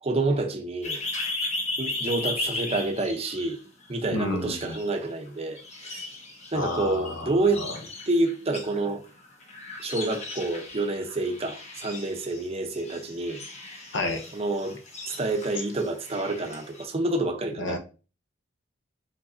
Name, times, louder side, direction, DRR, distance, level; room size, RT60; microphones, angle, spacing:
voice 1, 0.0-1.0 1.8-3.6 3.9-6.0 6.5-7.6 8.1-9.0 9.8-13.4 14.3-14.8 15.1-17.8, right 2 dB, 30° right, 0.7 m, -28 dB
sound 1, 0.8-4.0 4.4-5.3 5.6-16.8, left 2 dB, 35° left, 1.2 m, -36 dB
voice 2, 4.1-4.8 6.5-7.7 13.9-14.2 17.6-17.8, left 2 dB, 75° left, 1.0 m, -30 dB
4.8 x 3.9 x 2.6 m
head